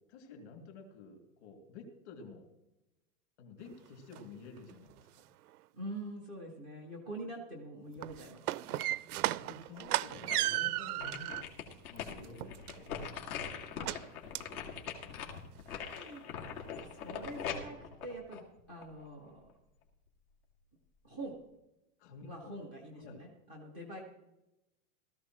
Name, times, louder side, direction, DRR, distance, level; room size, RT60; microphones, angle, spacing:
voice 1, 0.0-2.5 3.4-5.2 9.2-11.4 11.9-13.3 22.0-22.6 23.0-23.2, left 4 dB, 50° left, 3 dB, 2.6 m, -51 dB
sound 1, 3.7-3.8 4.1-4.2 4.6-5.2 7.9-11.5 12.0-13.1 13.8-14.0 14.3-14.6 14.9-15.0 15.4-15.5 15.9-16.0, right 16 dB, 80° right, 0.6 m, -35 dB
voice 2, 5.7-8.9 13.8-14.2 15.6-19.5 21.0-21.4 22.2-24.0, right 1 dB, 10° left, 0 dB, 0.4 m, -46 dB
sound 2, 9.7-10.6 11.0-19.1 19.5-19.6, left 7 dB, 70° left, 2.4 m, -42 dB
17.5 x 14.0 x 3.1 m, 0.94 s
supercardioid pair, 180°, 44 cm